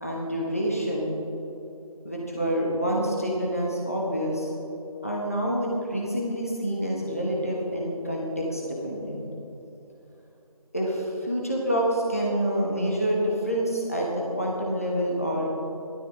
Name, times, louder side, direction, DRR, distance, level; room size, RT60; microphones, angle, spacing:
voice 1, 0.0-1.1 2.0-4.5 5.0-9.2 10.7-15.5, equal, 25° left, -3 dB, 1.2 m, -27 dB
17.0 x 12.5 x 3.3 m, 2.9 s
figure-of-eight pair, 180°, 19 cm